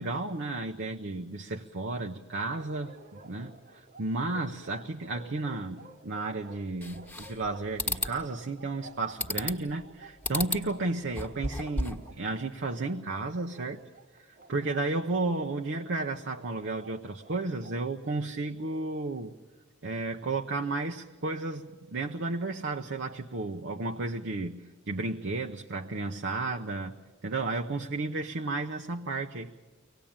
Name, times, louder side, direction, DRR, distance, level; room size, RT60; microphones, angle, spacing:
voice 1, 0.0-2.9 3.2-13.8 14.5-19.3 19.8-24.6 24.9-27.0 27.2-29.5, right 3 dB, 60° right, 4 dB, 0.8 m, -33 dB
Bark, 2.5-17.8, right 3 dB, 45° right, 1.2 m, -53 dB
sound 1, 6.8-7.5 7.8-8.1 9.2-9.7 10.2-10.7 11.0-12.1, left 2 dB, 5° left, 1.4 m, -32 dB
24.5 x 18.5 x 8.8 m, 1.3 s
head